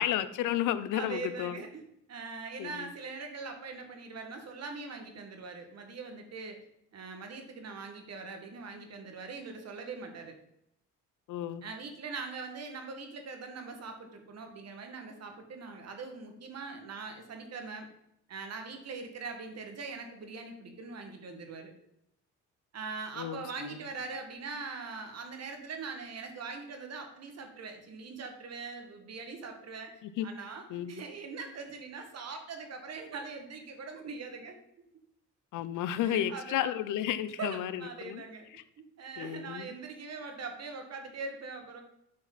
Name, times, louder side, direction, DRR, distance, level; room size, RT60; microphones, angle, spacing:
voice 1, 0.0-1.6 2.6-2.7 11.3-11.6 23.2-23.4 30.0-30.3 30.7-31.0 35.5-38.2 39.2-39.7, left 11 dB, 85° left, 14 dB, 0.7 m, -32 dB
voice 2, 0.9-1.8 2.1-6.6 6.9-10.4 11.6-17.9 18.3-21.7 22.7-34.6 36.0-36.8 37.4-38.5 39.0-41.8, right 4 dB, 55° right, 5 dB, 2.0 m, -42 dB
8.6 x 6.3 x 4.1 m, 0.79 s
cardioid pair, 90°, 30 cm